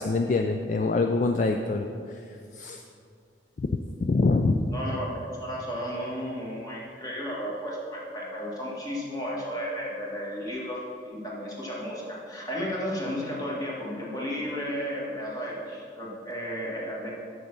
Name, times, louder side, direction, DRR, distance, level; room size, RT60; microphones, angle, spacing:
voice 1, 0.0-2.2 2.5-2.8 3.6-3.7 4.0-4.7, left 3 dB, 40° left, 4 dB, 0.3 m, -25 dB
voice 2, 4.7-10.8 11.0-17.1, equal, 20° left, -5 dB, 1.6 m, -33 dB
6.6 x 6.5 x 6.0 m, 2.4 s
head